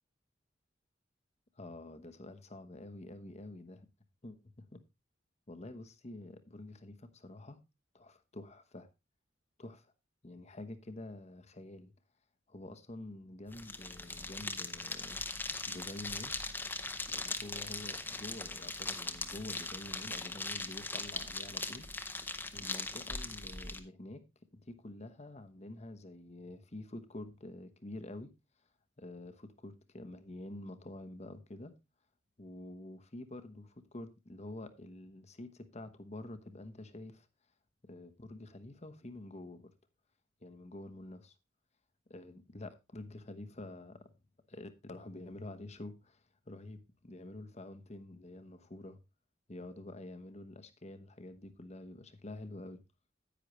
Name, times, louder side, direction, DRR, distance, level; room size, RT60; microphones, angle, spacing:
voice 1, 1.6-3.9 4.2-4.8 5.5-7.6 7.9-8.9 9.6-9.9 10.2-11.9 12.5-16.3 17.1-21.9 22.5-24.2 24.5-28.3 29.0-31.7 32.4-37.3 37.8-39.7 40.4-41.3 42.1-44.1 44.5-49.0 49.5-52.8, left 2 dB, 35° left, 1.0 m, -48 dB
sound 1, 13.5-23.8, left 3 dB, 10° left, 0.8 m, -40 dB
10.0 x 9.2 x 3.1 m
head